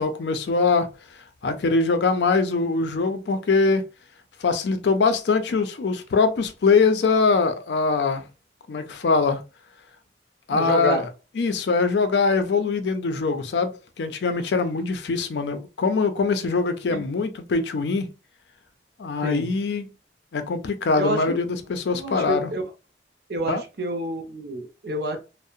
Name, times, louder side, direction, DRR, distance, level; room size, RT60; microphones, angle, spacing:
voice 1, 0.0-3.8 4.4-8.2 8.7-9.4 10.5-11.1 11.4-18.1 19.0-19.9 20.3-22.5 23.5-23.6, left 4 dB, 70° left, 0.4 m, -23 dB
voice 2, 10.5-11.1 16.9-17.0 19.2-19.5 21.0-21.4 21.9-22.6 23.3-25.2, right 1 dB, 60° right, 0.6 m, -28 dB
2.7 x 2.0 x 2.4 m
head